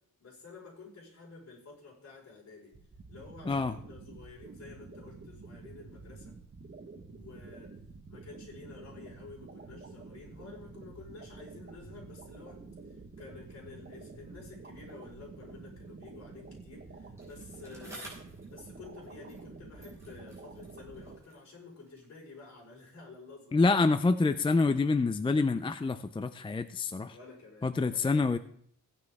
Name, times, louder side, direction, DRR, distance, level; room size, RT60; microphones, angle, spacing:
voice 1, 0.2-2.7 3.1-6.3 7.2-7.7 8.1-18.2 18.5-24.0 27.1-28.3, left 4 dB, 55° left, -2 dB, 4.8 m, -51 dB
sound 1, 2.7-21.2, right 3 dB, 35° right, 1.3 m, -49 dB
Bicycle, 17.2-19.5 19.8-22.2 23.0-23.1, right 1 dB, 10° right, 5.9 m, -53 dB
voice 2, 23.5-27.1 27.6-28.4, left 3 dB, 15° left, 10 dB, 0.4 m, -27 dB
16.5 x 9.7 x 3.6 m, 0.65 s
wide cardioid pair, 170°, 32 cm